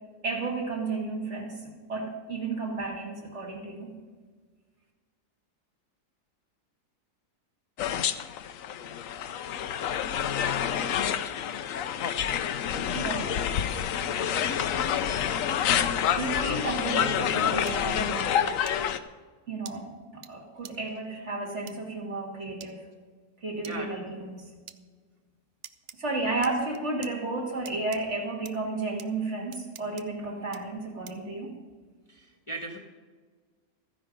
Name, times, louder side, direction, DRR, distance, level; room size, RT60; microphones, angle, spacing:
voice 1, 0.2-3.9 12.9-13.3 16.1-18.4 19.5-22.9 23.4-24.5 26.0-31.5, right 3 dB, 45° right, 0 dB, 2.4 m, -33 dB
sound 1, 7.8-19.0, left 9 dB, 65° left, 0.9 m, -28 dB
sound 2, 17.7-17.8 18.7-18.8 19.7-19.8 20.2-20.3 20.6-20.7 21.7-21.8 22.6-22.7 23.6-23.8 24.7-24.8 25.6-26.0 26.4-27.1 27.7-28.0 28.5-28.6 29.0-29.1 29.5-30.0 30.5-30.6 31.1-31.3, right 9 dB, 75° right, 0.5 m, -45 dB
voice 2, 23.6-23.9 26.2-26.4 32.1-32.8, right 2 dB, 20° left, 0 dB, 1.3 m, -38 dB
14.0 x 10.0 x 5.2 m, 1.5 s
omnidirectional pair, 1.7 m